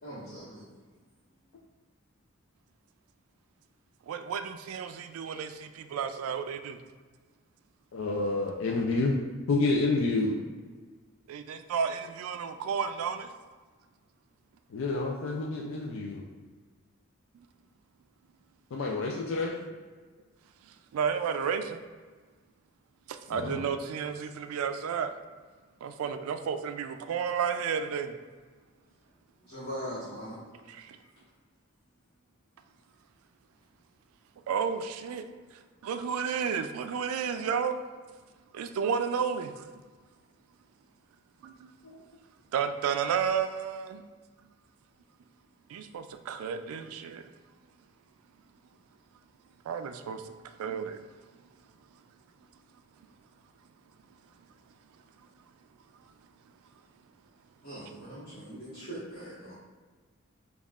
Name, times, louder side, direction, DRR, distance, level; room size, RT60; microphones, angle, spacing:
voice 1, 0.0-0.6 29.4-30.4 57.6-59.5, equal, 50° left, -13 dB, 1.3 m, -41 dB
voice 2, 4.1-6.8 11.3-13.3 20.9-21.8 23.3-25.1 25.8-28.1 30.7-31.0 34.5-35.3 35.8-37.8 38.5-39.6 41.4-41.5 42.5-44.0 45.7-47.2 49.7-50.3 50.6-51.0 58.5-58.6, right 7 dB, 90° right, 8 dB, 0.3 m, -32 dB
voice 3, 7.9-9.2 9.5-10.4 14.7-16.2 18.7-19.6 23.3-23.6, left 3 dB, 70° left, -2 dB, 0.4 m, -28 dB
5.2 x 2.3 x 2.3 m, 1.4 s
head